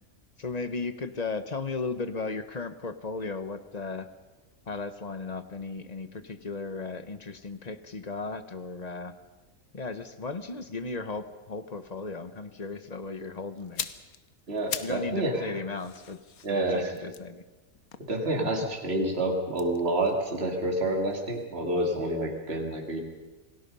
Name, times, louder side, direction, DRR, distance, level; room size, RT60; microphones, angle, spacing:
voice 1, 0.4-4.1 4.7-9.2 9.7-13.9 14.8-17.4 18.4-18.5, left 3 dB, 30° left, 11 dB, 1.0 m, -36 dB
sound 1, 13.6-15.1 15.4-18.7 19.5-21.5 21.8-22.0, left 8 dB, 85° left, 1.4 m, -41 dB
voice 2, 14.5-15.5 16.4-16.9 18.1-23.0, right 1 dB, 45° right, 0 dB, 2.9 m, -28 dB
27.5 x 19.0 x 5.5 m, 1.2 s
omnidirectional pair, 1.5 m